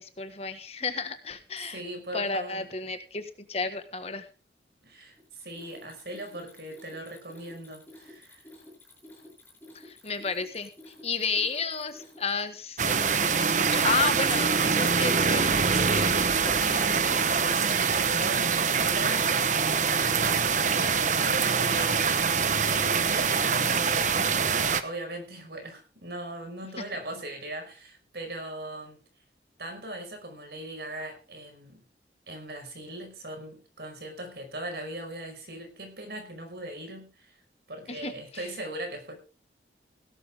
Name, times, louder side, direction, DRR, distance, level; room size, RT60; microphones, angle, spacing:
voice 1, 0.0-1.8 2.1-4.2 9.8-10.7 11.0-16.9 37.9-38.5, left 4 dB, 35° left, 9 dB, 1.5 m, -32 dB
voice 2, 1.6-2.7 4.8-8.5 17.6-19.5 19.9-22.2 22.7-29.0 29.6-31.8 32.3-37.3 37.7-39.1, right 1 dB, 65° right, 5 dB, 5.2 m, -39 dB
Mechanisms, 5.2-12.6, left 1 dB, 10° left, 7.4 m, -51 dB
sound 1, 12.8-24.8, right 5 dB, 45° right, 1.0 m, -24 dB
17.5 x 12.0 x 3.6 m, 0.34 s
head